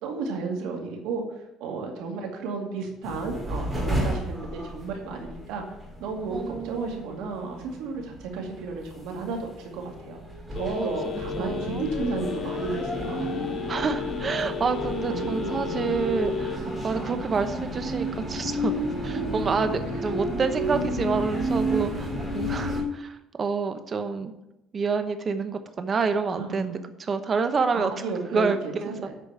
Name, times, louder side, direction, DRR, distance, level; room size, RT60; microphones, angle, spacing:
voice 1, 0.0-5.6 6.0-10.2 10.5-13.4 15.1-16.1 26.4-26.9 27.7-29.1, right 4 dB, 85° right, 1 dB, 2.2 m, -33 dB
sound 1, 3.0-22.8, right 1 dB, 10° right, 2.7 m, -32 dB
voice 2, 6.3-7.0 10.8-10.9 11.4-11.8 13.7-18.7 19.0-24.3 24.7-27.9 28.3-29.1, right 5 dB, 35° right, 9 dB, 0.9 m, -28 dB
Telephone, 10.6-16.6, left 14 dB, 40° left, 0.8 m, -35 dB
8.4 x 5.2 x 7.4 m, 0.88 s
cardioid pair, 120°, 0 cm